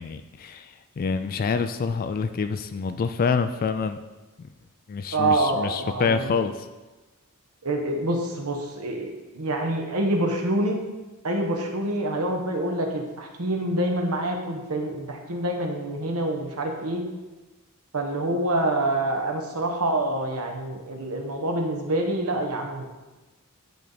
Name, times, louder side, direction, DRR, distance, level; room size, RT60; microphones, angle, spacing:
voice 1, 0.0-4.0 4.4-4.5 4.9-6.7, left 5 dB, 40° left, 10 dB, 0.3 m, -27 dB
voice 2, 5.1-6.4 7.6-10.8 11.2-17.0 17.9-22.9, right 1 dB, 85° right, 2 dB, 1.1 m, -26 dB
10.0 x 3.5 x 4.0 m, 1.2 s
head